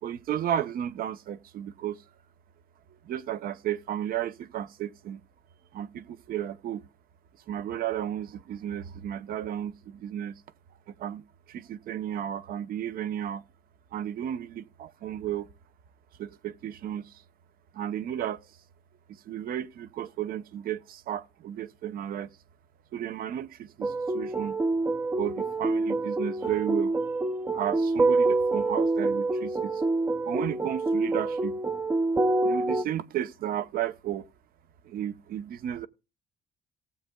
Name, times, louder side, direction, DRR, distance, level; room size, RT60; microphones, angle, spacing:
voice 1, 0.0-2.0 3.0-5.2 5.7-6.8 7.5-10.4 10.9-13.4 13.9-15.5 16.2-17.2 17.7-18.4 19.1-22.3 22.9-24.6 25.2-26.9 27.5-29.8 30.3-31.6 32.4-34.2 34.8-35.9, right 10 dB, 60° right, 0.7 m, -33 dB
sound 1, 23.8-32.8, right 2 dB, 15° right, 0.5 m, -26 dB
18.0 x 7.8 x 2.2 m
cardioid pair, 110°, 17 cm